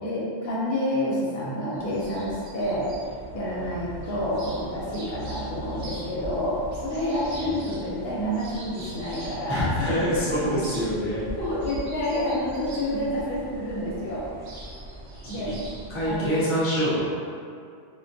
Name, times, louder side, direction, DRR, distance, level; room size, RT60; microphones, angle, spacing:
voice 1, 0.0-2.9 3.3-10.3 10.7-10.8 11.4-14.2 15.3-15.5 16.0-16.4, left 1 dB, 65° left, -7 dB, 0.8 m, -29 dB
sound 1, 1.7-16.3, right 1 dB, 80° right, 0.9 m, -40 dB
voice 2, 7.2-7.5 9.5-11.2 15.4-15.5 15.9-17.0, equal, 25° left, -10 dB, 0.3 m, -25 dB
2.2 x 2.1 x 2.6 m, 2.3 s
omnidirectional pair, 1.2 m